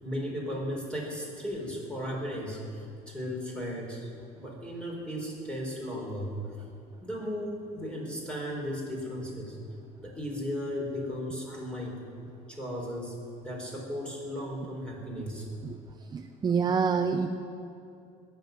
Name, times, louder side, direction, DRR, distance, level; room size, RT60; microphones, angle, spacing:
voice 1, 0.0-4.1 4.4-6.3 7.0-9.6 10.0-12.0 12.5-15.5, equal, 5° left, -2 dB, 4.4 m, -36 dB
voice 2, 16.1-17.3, right 6 dB, 25° right, 4 dB, 0.7 m, -27 dB
19.5 x 7.4 x 9.4 m, 2.5 s
cardioid pair, 120°, 17 cm